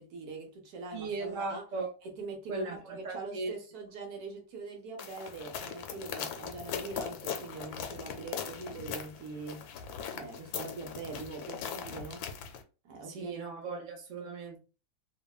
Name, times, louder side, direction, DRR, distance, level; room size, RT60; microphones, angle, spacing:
voice 1, 0.0-1.6 2.0-9.6 10.1-12.3 12.8-13.5, right 3 dB, 75° right, 1.3 m, -43 dB
voice 2, 0.9-1.9 2.5-3.5 13.0-14.6, right 3 dB, 40° right, 0.7 m, -37 dB
sound 1, 5.0-12.6, left 7 dB, 75° left, 1.1 m, -40 dB
3.2 x 2.1 x 2.3 m
omnidirectional pair, 1.7 m